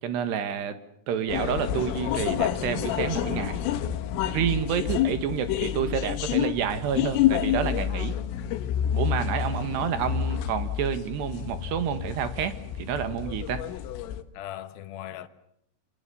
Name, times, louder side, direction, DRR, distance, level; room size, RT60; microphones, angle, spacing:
voice 1, 0.0-0.8 1.1-3.6 4.2-8.2 8.9-13.6, right 8 dB, 65° right, 3.6 m, -29 dB
sound 1, 1.3-14.2, left 10 dB, 85° left, 4.0 m, -29 dB
voice 2, 14.3-15.3, left 12 dB, 65° left, 2.5 m, -39 dB
29.0 x 25.0 x 7.1 m
omnidirectional pair, 5.7 m